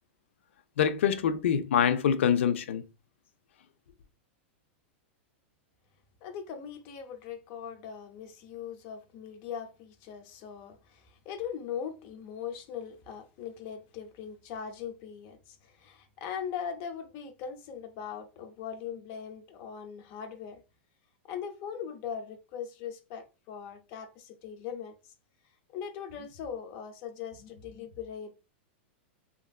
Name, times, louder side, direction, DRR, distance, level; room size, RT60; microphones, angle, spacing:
voice 1, 0.8-2.8, left 8 dB, 90° left, 0.4 m, -25 dB
voice 2, 6.2-20.6 21.3-25.1 25.7-28.3, left 7 dB, 35° left, 0.5 m, -40 dB
2.9 x 2.5 x 2.3 m
supercardioid pair, 165°, 6 cm